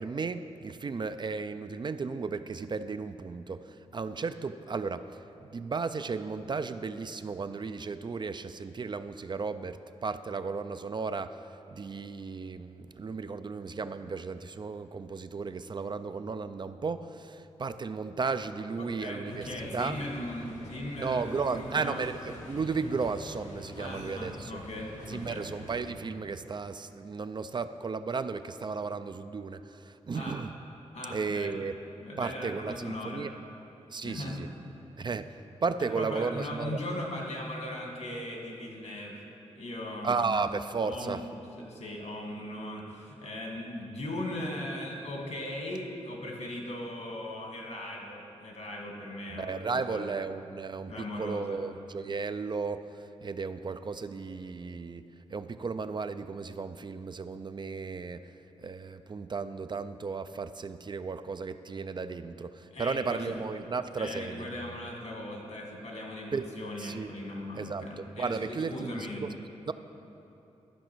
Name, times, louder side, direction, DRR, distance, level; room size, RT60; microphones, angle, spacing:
voice 1, 0.0-5.1 5.5-11.4 11.7-20.0 21.0-24.5 25.1-30.5 31.1-31.8 32.2-33.3 33.9-34.5 35.0-35.3 35.6-36.8 40.0-41.2 49.3-52.9 53.2-55.0 55.3-58.3 58.6-64.4 66.3-66.5 66.8-67.1 67.5-69.3 69.7-69.8, right 4 dB, 40° right, 11 dB, 0.4 m, -34 dB
voice 2, 18.8-22.0 23.8-25.5 30.1-30.4 30.9-31.6 32.0-33.3 34.0-34.4 35.8-39.2 39.5-40.5 40.8-41.2 41.6-50.1 50.9-51.6 62.7-69.3, left 1 dB, 70° left, 0 dB, 1.9 m, -39 dB
sound 1, 19.3-25.9, left 1 dB, 90° left, 1.4 m, -46 dB
12.5 x 5.0 x 6.1 m, 2.9 s
cardioid pair, 65°, 12 cm